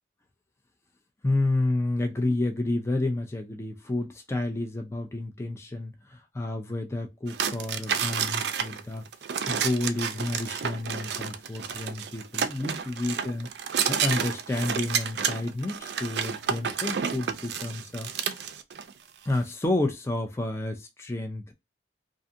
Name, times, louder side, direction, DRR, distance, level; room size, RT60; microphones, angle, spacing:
voice 1, 1.2-9.0 9.5-13.5 13.9-18.5 19.2-21.5, left 2 dB, 15° left, 0.4 m, -30 dB
sound 1, 7.3-18.9, right 7 dB, 65° right, 0.4 m, -30 dB
2.6 x 2.5 x 2.5 m
head